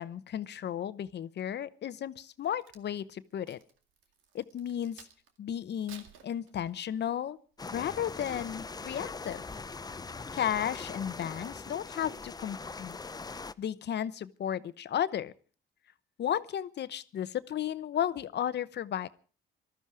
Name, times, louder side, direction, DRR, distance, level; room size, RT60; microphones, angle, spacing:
voice 1, 0.0-3.6 4.3-5.1 5.4-7.4 7.7-9.4 10.3-13.0 13.6-15.3 16.2-19.1, left 10 dB, 60° left, 15 dB, 0.9 m, -34 dB
Crack, 2.3-5.4 5.8-7.0 7.5-7.8, right 7 dB, 85° right, 2.2 m, -55 dB
sound 1, 7.6-13.5, left 4 dB, 20° left, 0.7 m, -41 dB
18.5 x 13.5 x 4.9 m, 0.40 s
cardioid pair, 90°, 20 cm